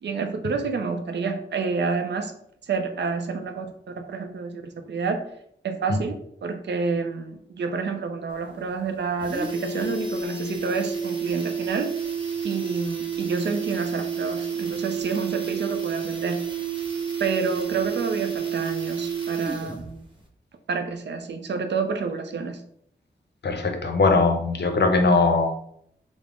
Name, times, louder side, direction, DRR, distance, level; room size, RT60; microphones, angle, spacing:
voice 1, 0.0-2.4 2.6-5.3 5.6-6.1 6.4-11.9 12.4-16.4 17.2-20.0 20.7-22.6, right 4 dB, 65° right, 6 dB, 0.5 m, -29 dB
sound 1, 8.3-8.4 8.7-8.8 9.1-19.9 20.2-20.3, right 6 dB, 25° right, 0.7 m, -30 dB
voice 2, 23.4-25.6, left 3 dB, 60° left, 5 dB, 0.6 m, -20 dB
3.6 x 2.0 x 3.4 m, 0.69 s
wide cardioid pair, 70°, 20 cm